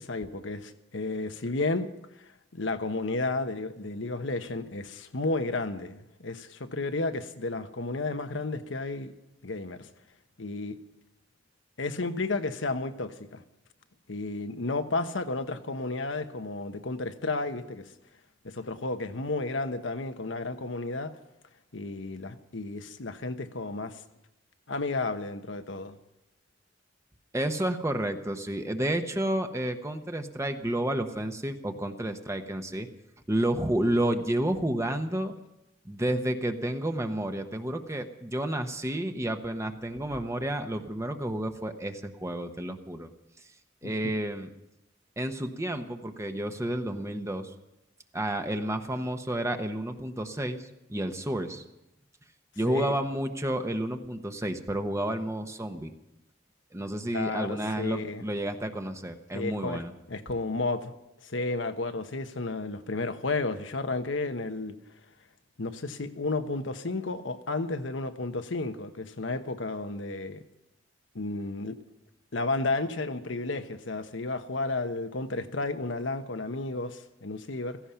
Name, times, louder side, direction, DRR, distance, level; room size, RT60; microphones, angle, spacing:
voice 1, 0.0-1.9 2.2-9.1 9.4-9.9 10.4-10.8 11.8-13.4 14.1-17.9 18.4-21.1 21.7-24.0 24.7-26.0 43.8-44.1 52.7-53.0 57.1-58.2 59.3-59.8 60.1-60.9 61.2-64.8 65.6-70.4 71.1-71.8 72.3-77.8, left 3 dB, 80° left, 9 dB, 1.0 m, -32 dB
voice 2, 27.3-32.9 33.3-35.3 35.8-43.1 43.8-44.5 45.2-47.5 48.1-51.6 52.6-55.9 56.7-59.9, right 1 dB, 15° right, 6 dB, 1.0 m, -30 dB
16.0 x 15.5 x 5.7 m, 0.92 s
head